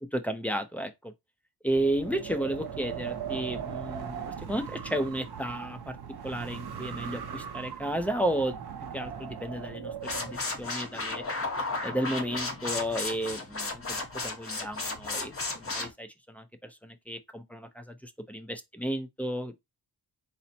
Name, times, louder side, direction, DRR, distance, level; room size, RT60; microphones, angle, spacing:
voice 1, 0.1-1.1 1.6-6.0 6.2-8.5 8.9-11.2 11.8-15.3 15.6-18.0 18.3-19.6, right 1 dB, 5° left, 0.5 m, -33 dB
Wind, 1.7-10.4, right 8 dB, 75° right, 0.7 m, -39 dB
sound 1, 10.0-15.9, left 3 dB, 35° left, 0.9 m, -34 dB
4.2 x 2.0 x 4.2 m
wide cardioid pair, 115°, 39 cm